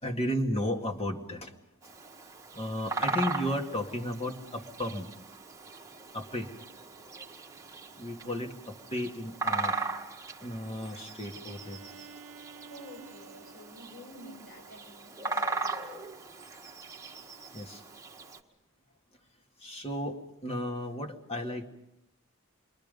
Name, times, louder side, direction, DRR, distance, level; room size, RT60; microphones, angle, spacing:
voice 1, 0.0-1.6 2.0-2.1 2.5-5.1 6.1-6.5 8.0-9.8 10.4-11.8 17.5-17.8 19.6-21.7, equal, 25° left, 3 dB, 2.1 m, -34 dB
Bird vocalization bird call bird song, 1.8-18.4, right 3 dB, 15° right, 1.6 m, -38 dB
Bowed string instrument, 11.5-15.2, right 5 dB, 80° right, 0.7 m, -53 dB
voice 2, 12.7-16.0, equal, 60° left, 2 dB, 7.3 m, -50 dB
28.0 x 23.0 x 5.3 m, 0.90 s
head